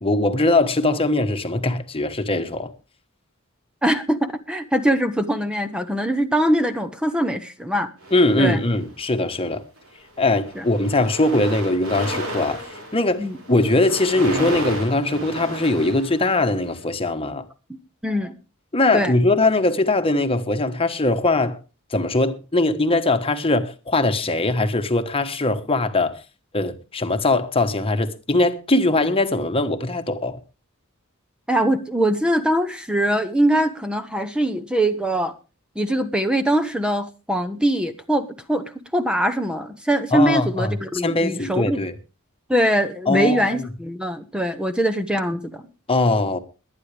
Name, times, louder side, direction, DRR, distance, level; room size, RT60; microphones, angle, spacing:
voice 1, 0.0-2.7 8.1-9.6 10.2-12.6 12.9-17.4 18.7-21.6 21.9-26.2 26.5-30.4 40.1-40.7 41.0-41.9 43.1-43.6 45.9-46.4, left 2 dB, 25° left, 1.3 m, -21 dB
voice 2, 3.8-7.9 8.4-8.6 10.6-10.7 13.2-13.4 18.0-18.3 18.9-19.1 31.5-35.3 35.8-41.8 42.5-45.6, right 1 dB, 5° right, 0.8 m, -22 dB
sound 1, 8.0-9.0 9.8-10.0 10.3-16.7, equal, 70° right, 5.0 m, -32 dB
22.0 x 9.4 x 3.4 m
head